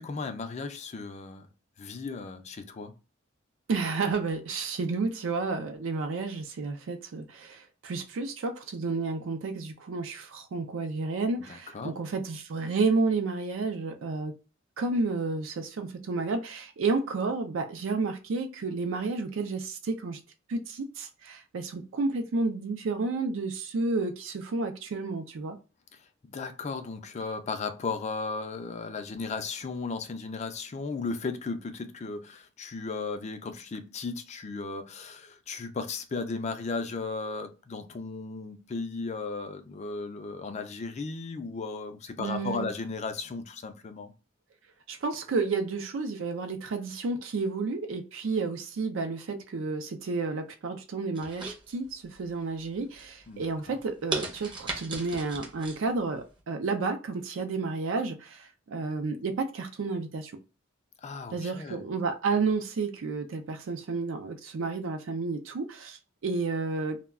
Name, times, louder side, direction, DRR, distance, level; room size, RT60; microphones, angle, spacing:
voice 1, 0.0-1.5 1.8-2.9 11.5-11.9 25.9-44.1 53.3-53.8 61.0-61.8, left 4 dB, 35° left, 0.4 m, -36 dB
voice 2, 3.7-14.3 14.8-20.2 20.5-25.6 42.2-42.7 44.9-60.3 61.3-67.0, right 3 dB, 70° right, 0.4 m, -31 dB
sound 1, 51.1-52.2 52.6-53.0 53.5-53.6 54.1-55.8 56.2-56.3, right 3 dB, 25° right, 0.6 m, -36 dB
2.2 x 2.1 x 3.5 m
head